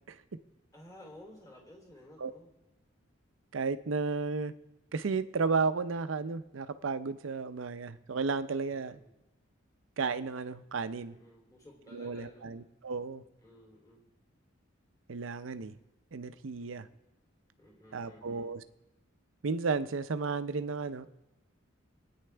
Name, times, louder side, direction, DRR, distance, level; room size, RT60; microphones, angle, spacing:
voice 1, 0.7-2.5 8.7-9.1 11.1-12.6 13.4-14.1 16.7-17.0 17.6-18.5, left 1 dB, 15° left, -1 dB, 3.2 m, -54 dB
voice 2, 3.5-4.6 4.9-9.0 10.0-11.2 11.9-13.2 15.1-15.8 16.1-16.9 17.9-18.6 19.4-21.1, right 4 dB, 75° right, 12 dB, 0.6 m, -33 dB
26.5 x 9.4 x 3.4 m, 0.99 s
head